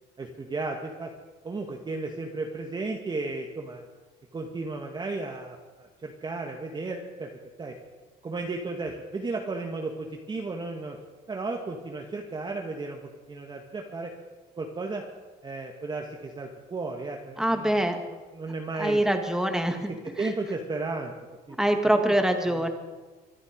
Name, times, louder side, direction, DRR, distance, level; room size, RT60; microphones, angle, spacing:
voice 1, 0.2-1.1 1.4-3.8 4.3-7.3 7.6-7.7 8.2-11.0 11.3-13.0 13.3-14.1 14.6-15.0 15.4-17.8 18.3-19.0 19.9-21.1 21.5-21.6 22.4-22.7, right 3 dB, 25° right, 1 dB, 1.7 m, -34 dB
voice 2, 17.4-18.0 18.8-19.9 20.2-20.3 21.6-22.7, right 1 dB, 5° right, 5 dB, 2.0 m, -24 dB
24.5 x 11.0 x 5.2 m, 1.3 s
cardioid pair, 110°, 17 cm